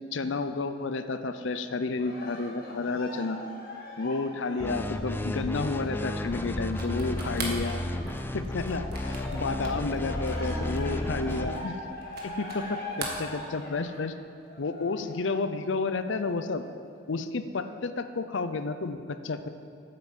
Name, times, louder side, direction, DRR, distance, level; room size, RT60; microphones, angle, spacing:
voice 1, 0.1-3.4 4.0-7.8 8.3-11.8 12.2-14.1 14.6-16.6 17.1-19.5, left 3 dB, 70° left, 10 dB, 0.6 m, -31 dB
Cheering, 2.0-8.3 8.7-15.3 15.9-16.0, left 1 dB, 50° left, 1.8 m, -42 dB
sound 1, 4.6-11.7, left 1 dB, 10° left, 0.3 m, -33 dB
sound 2, 6.7-12.7 12.9-13.9, right 4 dB, 50° right, 1.7 m, -41 dB
9.2 x 7.8 x 7.3 m, 2.5 s
head